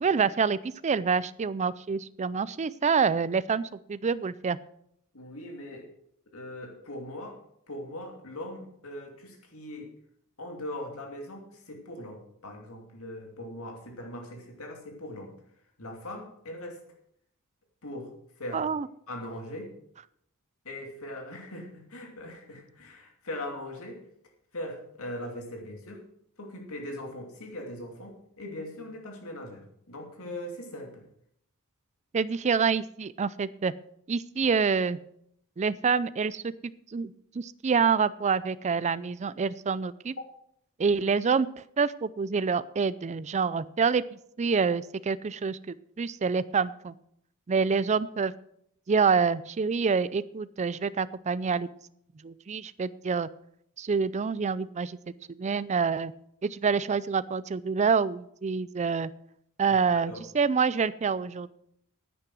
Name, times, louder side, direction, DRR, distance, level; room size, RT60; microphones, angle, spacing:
voice 1, 0.0-4.6 18.5-18.9 32.1-33.7 34.1-35.0 35.6-40.1 40.8-41.5 41.8-44.0 44.4-46.9 47.5-48.3 48.9-51.7 52.2-53.3 53.8-55.0 55.3-56.1 56.4-59.1 59.6-61.5, right 5 dB, 30° right, 17 dB, 0.4 m, -27 dB
voice 2, 5.1-5.9 6.3-7.4 7.7-9.9 10.4-15.3 15.8-16.8 17.8-18.1 18.4-18.6 19.1-19.7 20.6-24.0 24.5-26.0 26.4-31.0 34.4-34.5 59.7-60.2, left 1 dB, 70° left, 2 dB, 2.8 m, -40 dB
9.7 x 9.7 x 6.2 m, 0.70 s
head